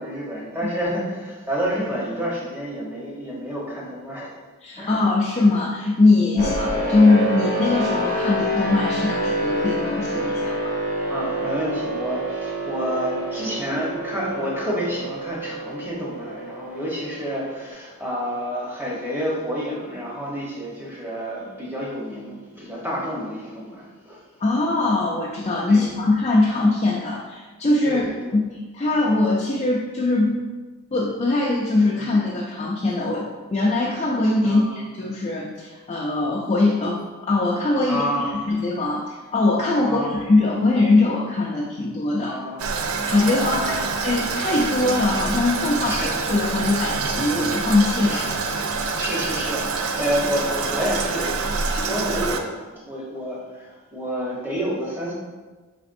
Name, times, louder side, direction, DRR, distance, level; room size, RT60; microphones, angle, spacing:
voice 1, 0.0-4.4 4.8-5.1 6.3-6.6 11.1-24.2 25.7-25.9 27.8-28.4 32.0-32.1 34.4-34.8 37.8-38.4 39.8-40.1 42.2-42.7 43.2-43.9 45.8-46.3 48.1-48.2 49.0-52.5 52.9-55.1, equal, 10° right, -5 dB, 0.9 m, -29 dB
voice 2, 4.6-10.8 24.4-28.0 28.3-28.4 28.7-30.4 30.9-37.0 37.3-38.0 38.5-42.3 43.1-48.2, left 2 dB, 30° left, -5 dB, 0.4 m, -21 dB
sound 1, 6.4-17.7, equal, 40° right, 0.8 m, -27 dB
Toilet flush, 42.6-52.4, right 4 dB, 70° right, 0.4 m, -26 dB
4.9 x 3.4 x 2.6 m, 1.3 s
head